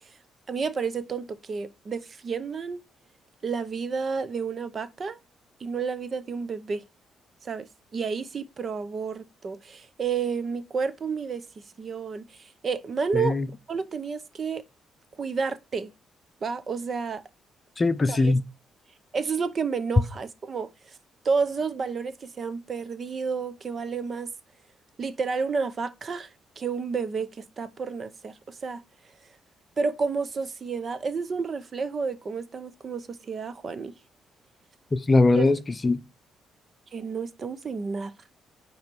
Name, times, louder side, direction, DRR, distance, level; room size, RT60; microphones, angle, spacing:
voice 1, 0.5-2.8 3.4-5.2 5.6-6.8 7.4-11.4 11.8-13.4 13.7-14.6 15.2-15.9 16.4-17.2 18.1-18.3 19.1-20.9 21.2-24.3 25.0-26.3 26.6-28.8 29.8-33.9 35.3-35.5 36.9-38.1, right 5 dB, 45° right, 0.7 m, -30 dB
voice 2, 13.1-13.5 17.8-18.4 34.9-36.0, left 2 dB, 30° left, 0.7 m, -21 dB
9.2 x 3.2 x 4.6 m
cardioid pair, 90°, 0 cm